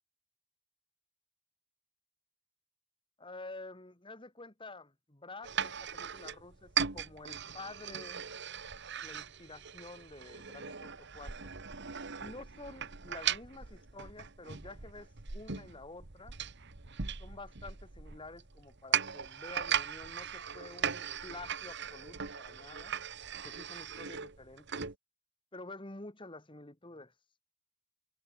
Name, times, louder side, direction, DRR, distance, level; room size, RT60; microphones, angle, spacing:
voice 1, 3.2-8.3 9.0-11.8 12.2-16.4 17.2-22.9 23.4-24.8 25.5-27.1, left 2 dB, 25° left, 1.7 m, -49 dB
sound 1, 5.4-25.0, right 8 dB, 55° right, 1.5 m, -39 dB
head